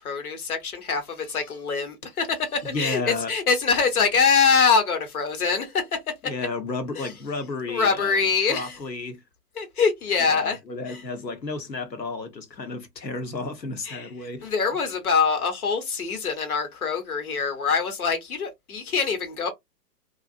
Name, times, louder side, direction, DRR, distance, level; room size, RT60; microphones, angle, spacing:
voice 1, 0.0-5.9 7.0-7.1 7.7-8.8 9.6-10.6 10.9-11.0 13.8-14.1 14.4-19.5, left 5 dB, 60° left, 1.2 m, -24 dB
voice 2, 2.7-3.3 6.2-9.2 10.3-14.5, left 3 dB, 90° left, 1.1 m, -32 dB
2.7 x 2.4 x 2.5 m
figure-of-eight pair, 135°, 49 cm